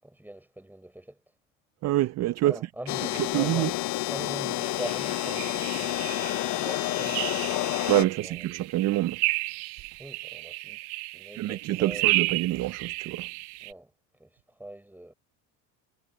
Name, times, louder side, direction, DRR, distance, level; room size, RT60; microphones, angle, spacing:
voice 1, 0.0-1.2 2.4-3.7 4.1-6.2 6.6-7.3 8.0-8.4 10.0-12.1 13.6-13.9 14.2-15.1, right 1 dB, 5° right, 5.2 m, -42 dB
voice 2, 1.8-2.6 3.2-3.7 7.9-9.2 11.4-13.3, right 16 dB, 40° right, 0.4 m, -26 dB
sound 1, 2.9-8.0, left 16 dB, 50° left, 0.9 m, -29 dB
sound 2, 4.6-13.7, right 23 dB, 75° right, 1.5 m, -33 dB
supercardioid pair, 120°, 45 cm